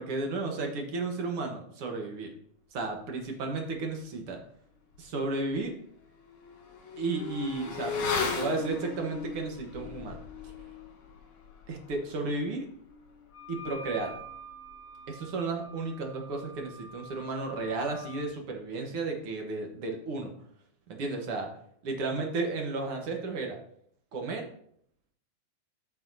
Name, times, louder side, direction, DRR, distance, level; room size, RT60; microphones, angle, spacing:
voice 1, 0.0-2.3 2.7-4.4 5.0-5.7 7.0-10.2 10.4-10.5 11.7-12.7 13.5-14.2 15.1-20.3 20.9-21.5 21.8-23.6 24.1-24.5, right 3 dB, 60° right, 2 dB, 1.8 m, -33 dB
Motorcycle / Accelerating revving vroom, 4.9-5.0 5.4-15.4 15.7-15.8, left 5 dB, 55° left, 2.3 m, -38 dB
Wind instrument woodwind instrument, 13.3-18.3, equal, 20° left, 2.9 m, -47 dB
13.5 x 6.0 x 2.7 m, 0.65 s
omnidirectional pair, 3.4 m